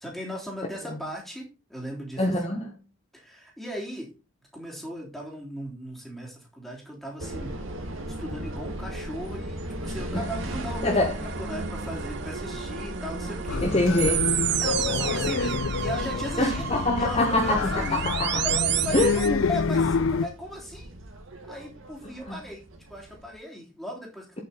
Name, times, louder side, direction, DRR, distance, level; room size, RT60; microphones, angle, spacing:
voice 1, 0.0-2.7 3.1-4.1 4.5-7.6 8.0-13.6 14.6-18.1 18.4-20.9 21.4-22.6 22.9-24.4, equal, ahead, 3.2 m, -37 dB
voice 2, 2.2-2.8 10.1-10.3 10.8-11.2 13.6-14.3 16.4-18.4 18.9-19.5 22.3-22.4, left 1 dB, 30° left, 1.2 m, -25 dB
sound 1, 7.2-23.4, right 1 dB, 70° right, 2.1 m, -37 dB
sound 2, 10.2-19.3, right 13 dB, 50° right, 0.6 m, -32 dB
sound 3, 13.5-20.3, left 4 dB, 70° left, 0.5 m, -27 dB
8.6 x 7.8 x 4.1 m
head